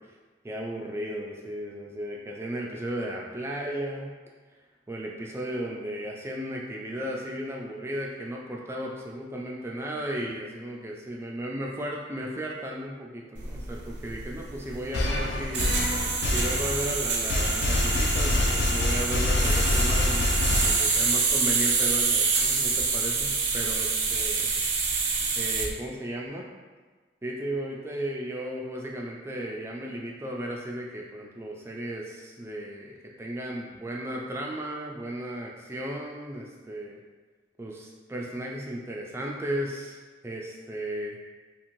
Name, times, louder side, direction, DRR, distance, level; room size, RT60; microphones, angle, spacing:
voice 1, 0.4-4.1 4.9-15.7 16.3-24.5 25.4-26.5 27.2-37.0 37.6-40.0 40.2-41.2, right 1 dB, 15° right, -2 dB, 0.3 m, -35 dB
sound 1, 13.4-25.7, right 4 dB, 85° right, 0.5 m, -27 dB
sound 2, 14.9-21.3, left 2 dB, 70° left, 0.3 m, -26 dB
2.6 x 2.5 x 3.0 m, 1.4 s
head